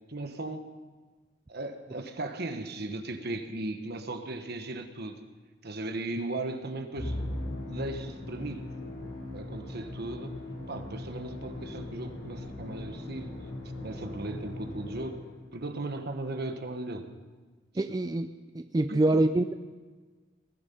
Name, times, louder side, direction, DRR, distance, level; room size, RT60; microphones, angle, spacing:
voice 1, 0.1-0.7 1.5-5.2 5.6-7.2 7.7-8.7 9.0-10.4 10.7-13.4 13.8-15.2 15.5-17.1 18.9-19.3, right 2 dB, 55° right, 6 dB, 1.3 m, -37 dB
Musical instrument, 7.0-15.5, left 1 dB, 75° left, 4.4 m, -39 dB
voice 2, 17.8-18.3 18.5-19.5, right 2 dB, 20° right, 8 dB, 0.4 m, -25 dB
20.0 x 11.0 x 5.5 m, 1.4 s
head